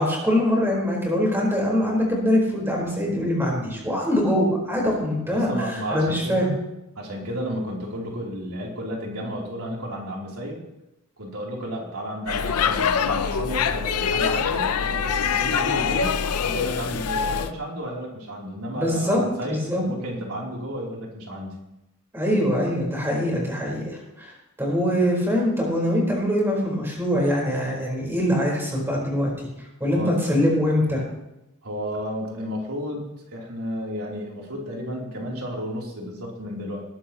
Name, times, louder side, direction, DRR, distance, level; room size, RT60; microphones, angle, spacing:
voice 1, 0.0-6.5 14.2-14.3 18.7-19.8 22.1-24.3 24.6-29.3 29.8-31.0, equal, 10° right, -2 dB, 4.3 m, -23 dB
voice 2, 5.3-6.5 6.9-10.6 11.2-21.6 29.9-30.1 31.6-36.8, equal, 80° right, -2 dB, 3.3 m, -32 dB
Speech / Shout / Subway metro underground, 12.3-17.5, left 6 dB, 80° left, 0.6 m, -24 dB
19.5 x 12.5 x 3.0 m, 0.90 s
head